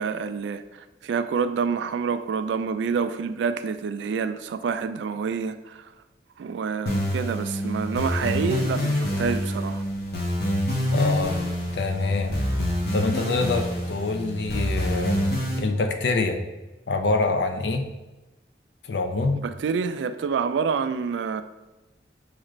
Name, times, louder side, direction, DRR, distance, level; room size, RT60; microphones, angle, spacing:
voice 1, 0.0-5.8 6.4-9.8 19.3-21.4, right 5 dB, 85° right, 11 dB, 0.3 m, -27 dB
sound 1, 6.9-15.6, equal, 60° left, 0.9 m, -26 dB
voice 2, 10.9-11.4 11.7-12.3 12.9-15.2 15.6-16.4 16.9-17.8 18.8-19.4, left 3 dB, 80° left, 6 dB, 0.5 m, -25 dB
6.1 x 2.4 x 3.1 m, 1.1 s
head